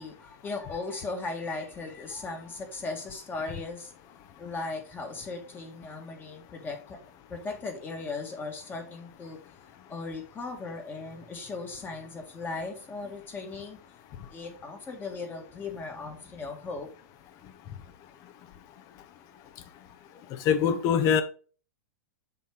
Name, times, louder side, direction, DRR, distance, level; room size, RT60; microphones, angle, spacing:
voice 1, 0.0-3.9 4.4-7.0 7.3-9.4 9.9-13.8 14.3-16.9, left 3 dB, 20° left, 1.8 m, -37 dB
voice 2, 20.4-21.2, left 7 dB, 40° left, 1.0 m, -22 dB
7.0 x 4.4 x 3.6 m
hypercardioid pair, 115°, 9 cm